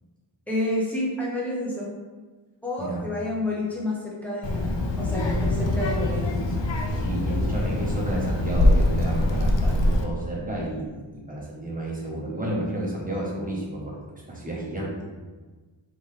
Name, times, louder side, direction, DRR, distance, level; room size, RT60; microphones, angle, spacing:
voice 1, 0.5-1.9 2.6-6.3, left 1 dB, 5° left, -5 dB, 1.3 m, -29 dB
Child speech kid speaking, 4.4-10.0, left 1 dB, 65° left, 0.7 m, -23 dB
voice 2, 7.0-14.0 14.3-15.1, right 1 dB, 15° right, -4 dB, 1.1 m, -31 dB
4.2 x 3.4 x 3.4 m, 1.3 s
wide cardioid pair, 85°, 47 cm